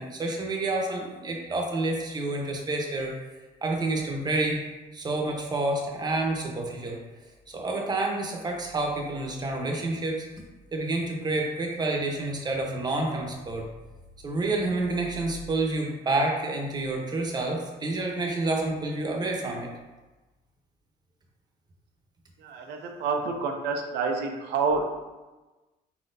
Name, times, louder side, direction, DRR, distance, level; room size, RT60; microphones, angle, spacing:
voice 1, 0.0-3.1 3.6-4.6 4.9-7.0 7.5-10.3 10.7-13.7 14.2-19.7, right 2 dB, 25° right, 0 dB, 0.9 m, -29 dB
voice 2, 22.4-24.9, right 4 dB, 80° right, 2 dB, 0.6 m, -28 dB
4.4 x 4.1 x 2.6 m, 1.1 s
cardioid pair, 110°, 17 cm